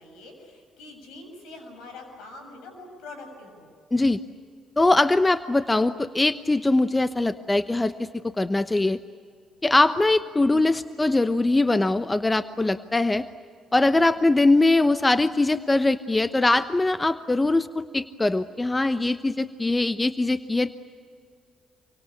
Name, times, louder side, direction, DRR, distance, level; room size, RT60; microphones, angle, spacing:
voice 1, 0.0-3.7, left 2 dB, 75° left, 5 dB, 7.1 m, -44 dB
voice 2, 4.8-9.0 9.6-13.2 13.7-20.8, left 2 dB, 20° left, 12 dB, 0.9 m, -22 dB
27.5 x 24.5 x 8.6 m, 2.1 s
hypercardioid pair, 50°, 0 cm